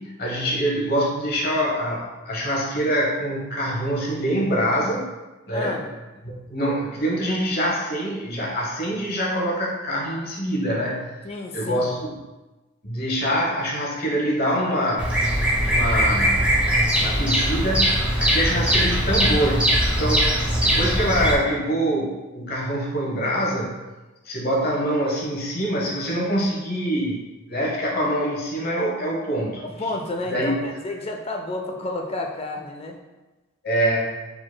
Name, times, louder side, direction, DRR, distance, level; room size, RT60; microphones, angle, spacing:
voice 1, 0.0-5.1 5.5-5.8 6.2-11.1 11.5-12.2 12.8-15.1 15.6-16.4 17.0-23.8 24.2-29.6 30.2-30.5 33.6-34.1, equal, 50° left, -3 dB, 1.0 m, -25 dB
voice 2, 5.5-5.9 11.2-11.9 29.6-33.0, left 2 dB, 30° left, 2 dB, 0.4 m, -31 dB
Bird vocalization bird call bird song, 15.0-21.4, equal, 5° right, 0.7 m, -21 dB
4.9 x 3.9 x 2.2 m, 1.1 s
head